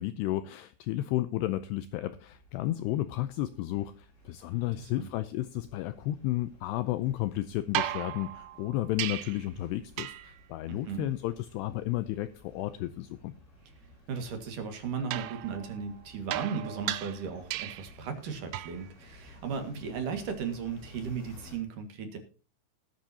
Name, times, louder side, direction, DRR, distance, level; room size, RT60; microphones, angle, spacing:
voice 1, 0.0-13.3, left 15 dB, 85° left, 13 dB, 2.4 m, -32 dB
sound 1, 2.1-21.6, left 2 dB, 35° left, 6.6 m, -56 dB
voice 2, 4.7-5.1 10.7-11.1 14.1-22.2, right 6 dB, 55° right, 6 dB, 2.8 m, -36 dB
sound 2, 7.7-9.5 10.0-10.4 15.1-18.0 18.5-18.9 20.9-21.0, right 14 dB, 90° right, 3.3 m, -36 dB
19.5 x 9.1 x 2.8 m, 0.38 s
omnidirectional pair, 5.4 m